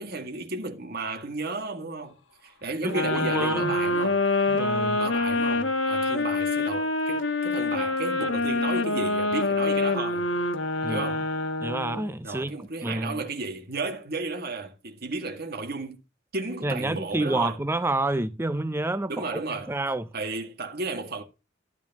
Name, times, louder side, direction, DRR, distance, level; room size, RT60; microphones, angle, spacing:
voice 1, 0.0-2.2 2.4-4.2 5.0-10.3 10.8-11.3 12.2-16.0 16.3-17.6 19.1-19.7 20.1-21.2, right 3 dB, 50° right, 2.0 m, -33 dB
voice 2, 2.8-3.8 4.5-5.0 10.8-11.1 11.6-13.2 16.6-20.1, right 2 dB, 10° right, 0.5 m, -29 dB
sound 1, 2.9-12.1, left 2 dB, 70° left, 1.2 m, -26 dB
13.0 x 8.3 x 3.0 m
head